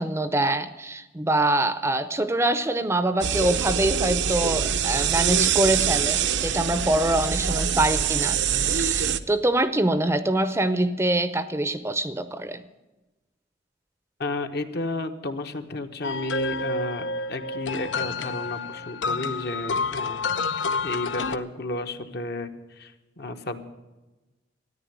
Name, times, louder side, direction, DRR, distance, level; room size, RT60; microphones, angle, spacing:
voice 1, 0.0-12.6, right 1 dB, 15° right, 12 dB, 0.6 m, -24 dB
sound 1, 3.2-9.2, right 8 dB, 70° right, 0.7 m, -24 dB
voice 2, 14.2-20.3 20.8-23.6, left 2 dB, 60° left, 6 dB, 1.2 m, -32 dB
sound 2, 16.0-21.4, left 4 dB, 85° left, 0.7 m, -29 dB
14.0 x 9.8 x 9.3 m, 1.1 s
head